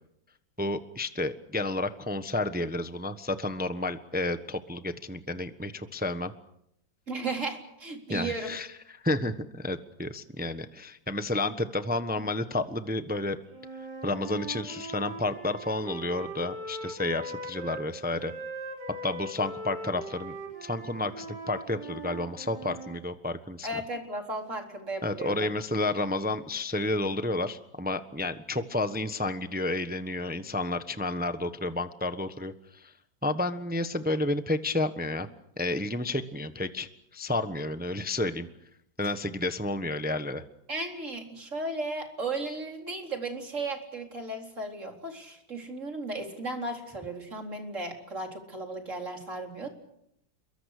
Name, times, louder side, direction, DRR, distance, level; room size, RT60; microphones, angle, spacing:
voice 1, 0.6-6.3 8.1-13.4 14.0-18.3 19.0-20.4 20.6-23.8 25.0-32.9 33.2-35.3 35.6-38.5 39.0-40.4, left 2 dB, 5° right, 10 dB, 0.9 m, -31 dB
voice 2, 7.1-8.5 23.6-25.5 40.7-49.7, right 2 dB, 40° right, 3 dB, 4.4 m, -35 dB
Wind instrument woodwind instrument, 13.5-17.9 18.2-23.0, right 1 dB, 60° right, 4.7 m, -40 dB
29.0 x 23.5 x 6.7 m, 0.76 s
omnidirectional pair, 2.1 m